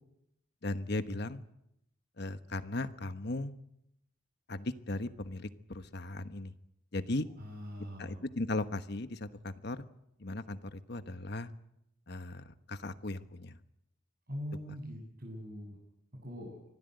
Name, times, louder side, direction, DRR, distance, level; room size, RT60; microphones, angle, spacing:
voice 1, 0.6-1.4 2.2-3.6 4.5-6.5 6.9-7.2 8.0-9.8 10.2-11.5 12.1-13.6, left 2 dB, 55° left, 10 dB, 1.3 m, -37 dB
voice 2, 7.4-8.2 14.3-15.8 16.2-16.6, equal, 50° right, -2 dB, 7.0 m, -42 dB
25.5 x 17.0 x 9.3 m, 0.81 s
head